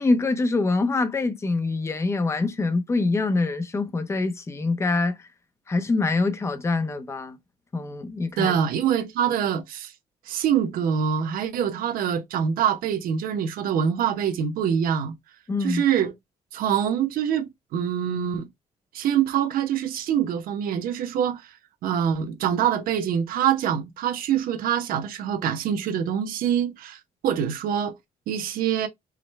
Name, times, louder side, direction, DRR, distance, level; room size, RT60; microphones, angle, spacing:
voice 1, 0.0-5.3 5.7-7.4 7.7-8.5 15.5-15.8, left 3 dB, 20° left, 0.6 m, -24 dB
voice 2, 8.4-9.9 10.2-15.1 15.6-16.1 16.5-18.5 18.9-21.6 21.8-28.0 28.3-28.9, right 8 dB, 80° right, 0.7 m, -25 dB
4.9 x 2.1 x 3.1 m
cardioid pair, 170°, 15 cm